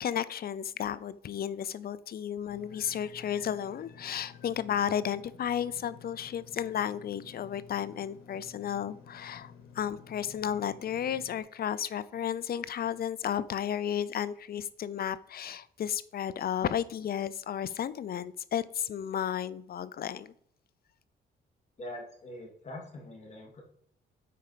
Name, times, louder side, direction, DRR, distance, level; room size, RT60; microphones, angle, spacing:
voice 1, 0.0-20.3, left 9 dB, 50° left, 0.6 m, -33 dB
Engine / Mechanisms, 2.5-11.4, left 6 dB, 90° left, 1.6 m, -53 dB
voice 2, 21.8-23.6, left 1 dB, 35° left, 3.3 m, -43 dB
8.7 x 5.2 x 5.1 m
cardioid pair, 90°, 20 cm